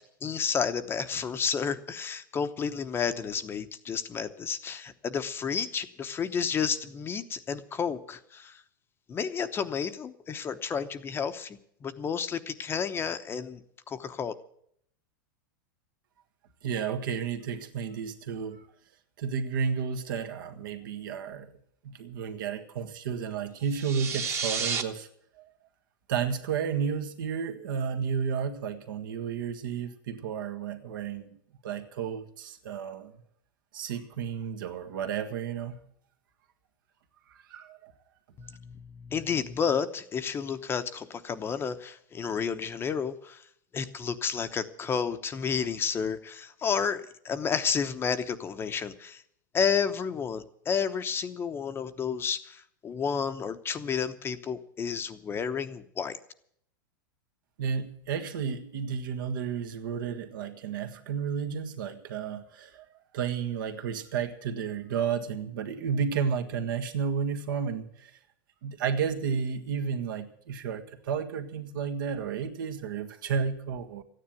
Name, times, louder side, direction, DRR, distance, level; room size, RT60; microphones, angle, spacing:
voice 1, 0.2-8.6 9.1-13.6 13.9-14.3 38.4-43.4 43.7-49.2 49.5-56.2, left 6 dB, 20° left, 10 dB, 0.9 m, -31 dB
voice 2, 16.6-18.6 19.2-21.5 21.8-25.1 25.4-25.5 26.1-31.4 31.6-33.1 33.7-35.8 37.3-37.9 57.6-62.8 63.1-68.1 68.6-74.0, right 6 dB, 75° right, 5 dB, 1.7 m, -32 dB
sound 1, 23.7-24.8, right 5 dB, 25° right, 1.2 m, -31 dB
14.0 x 9.8 x 9.1 m, 0.67 s
supercardioid pair, 130°, 11 cm